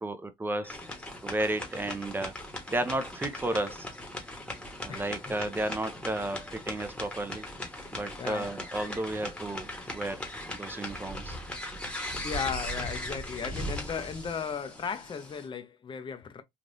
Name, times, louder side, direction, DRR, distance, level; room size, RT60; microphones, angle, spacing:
voice 1, 0.0-0.8 1.2-2.3 2.7-3.9 4.8-7.5 7.9-10.3 10.5-11.4, right 1 dB, 10° right, 0.6 m, -33 dB
sound 1, 0.6-15.5, left 1 dB, 5° left, 1.1 m, -39 dB
voice 2, 4.9-5.4 7.8-8.5 12.2-16.4, left 6 dB, 30° left, 0.6 m, -36 dB
3.3 x 2.4 x 2.6 m
cardioid pair, 110°, 17 cm